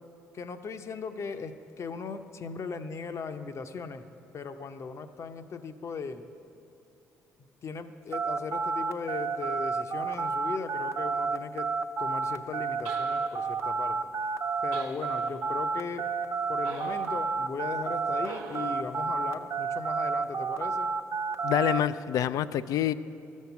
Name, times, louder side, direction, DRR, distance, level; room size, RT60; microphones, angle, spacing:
voice 1, 0.3-4.0 4.3-6.3 7.4-11.7 12.0-14.0 14.6-16.1 16.5-20.9, left 5 dB, 50° left, 9 dB, 0.7 m, -38 dB
sound 1, 8.1-18.3 18.5-21.8, right 5 dB, 45° right, 0.6 m, -30 dB
sound 2, 12.8-13.6 14.7-15.5 16.6-17.2 18.2-18.9, right 5 dB, 90° right, 0.8 m, -43 dB
voice 2, 21.4-22.9, left 11 dB, 70° left, 15 dB, 0.4 m, -26 dB
13.0 x 6.4 x 7.0 m, 2.7 s
supercardioid pair, 65°, 6 cm